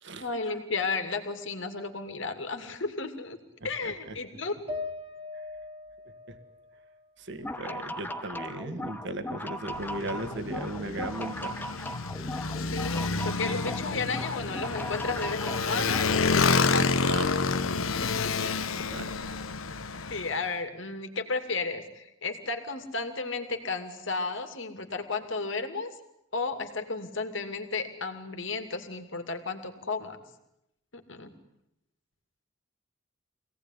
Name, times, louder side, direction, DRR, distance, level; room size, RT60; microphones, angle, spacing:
voice 1, 0.2-3.4 3.6-4.5 12.7-17.2 18.0-18.4 20.1-25.9 26.3-30.2 30.9-31.3, left 3 dB, 65° left, 7 dB, 2.6 m, -33 dB
voice 2, 3.6-4.2 6.3-6.4 7.2-11.7 13.2-13.8 16.8-17.3 18.4-18.5 18.9-19.3, right 2 dB, 60° right, 7 dB, 2.0 m, -37 dB
sound 1, 4.7-8.1 8.5-9.5, left 3 dB, 25° right, 2.1 m, -42 dB
sound 2, 7.3-16.2, left 1 dB, 10° left, 0.8 m, -38 dB
Motorcycle, 9.7-20.4, left 4 dB, 85° left, 1.1 m, -29 dB
25.0 x 18.0 x 9.9 m, 0.84 s
head